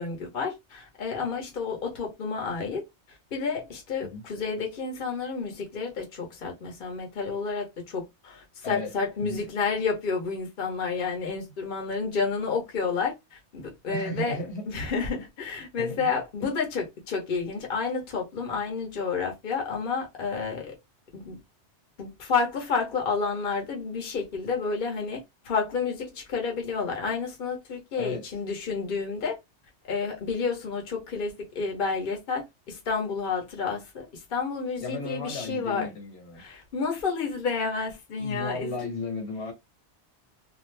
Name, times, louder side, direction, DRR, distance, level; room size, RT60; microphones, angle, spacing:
voice 1, 0.0-2.8 3.3-14.4 14.7-20.7 21.1-21.4 22.0-29.4 29.9-35.9 36.4-38.8, left 5 dB, 50° left, 1.0 m, -30 dB
voice 2, 8.6-9.4 13.9-14.7 15.8-16.1 16.4-16.5 28.0-28.2 34.8-36.4 38.2-39.5, left 2 dB, 70° left, 1.4 m, -35 dB
2.5 x 2.4 x 3.2 m
omnidirectional pair, 1.2 m